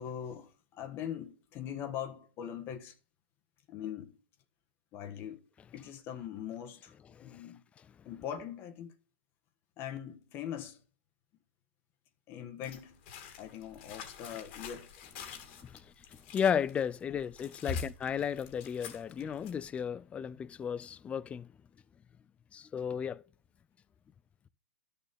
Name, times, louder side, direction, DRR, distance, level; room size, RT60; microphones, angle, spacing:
voice 1, 0.0-2.9 3.7-4.2 4.9-5.4 5.7-6.9 7.2-7.6 8.0-8.9 9.8-10.8 12.3-13.0 13.4-14.9 17.1-17.2 17.7-17.8, left 9 dB, 40° left, 1.2 m, -41 dB
sound 1, 12.6-19.7, left 8 dB, 60° left, 2.3 m, -49 dB
voice 2, 16.3-21.5 22.5-23.2, left 7 dB, 20° left, 0.4 m, -33 dB
11.5 x 6.9 x 3.4 m
hypercardioid pair, 125°, 6 cm